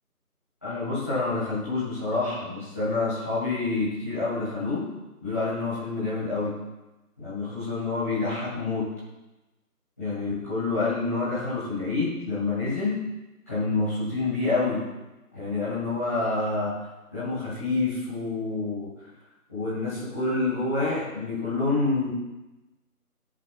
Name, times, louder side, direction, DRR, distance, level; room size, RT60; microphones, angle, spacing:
voice 1, 0.6-4.9 5.2-6.6 7.2-8.9 10.0-13.0 13.5-14.8 15.3-16.9 17.1-19.1 19.5-22.1, left 3 dB, 10° left, -14 dB, 2.5 m, -27 dB
21.5 x 7.5 x 2.4 m, 1.1 s
figure-of-eight pair, 170°, 46 cm